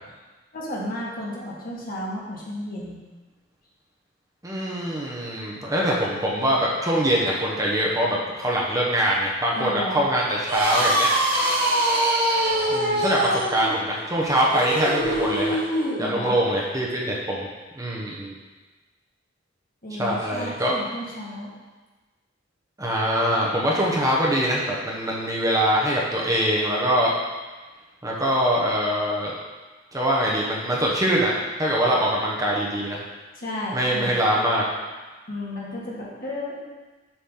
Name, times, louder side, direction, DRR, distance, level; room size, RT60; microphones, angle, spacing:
voice 1, 0.5-3.0 9.6-10.0 16.0-16.4 19.8-21.5 33.4-34.2 35.3-36.6, left 1 dB, 50° left, -5 dB, 2.0 m, -33 dB
voice 2, 4.4-11.1 12.7-15.6 16.0-17.5 17.8-18.3 20.0-20.7 22.8-27.1 28.0-29.3 29.9-31.3 31.6-33.0 33.7-34.7, equal, 20° right, -4 dB, 1.0 m, -23 dB
sound 1, 10.4-16.0, right 1 dB, 55° right, 2.3 m, -23 dB
7.1 x 6.1 x 3.8 m, 1.2 s
head